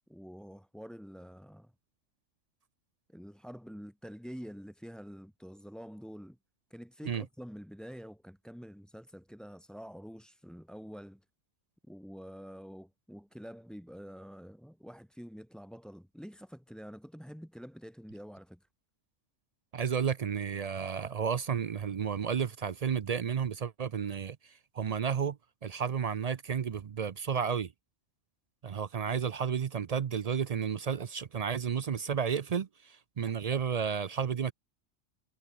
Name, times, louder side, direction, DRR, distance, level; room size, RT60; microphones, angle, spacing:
voice 1, 0.1-1.7 3.1-6.4 6.7-11.2 11.9-18.7, equal, ahead, 7.6 m, -47 dB
voice 2, 19.7-24.4 24.7-25.4 25.6-27.7 28.6-34.5, right 7 dB, 55° right, 0.4 m, -32 dB
omnidirectional pair, 1.3 m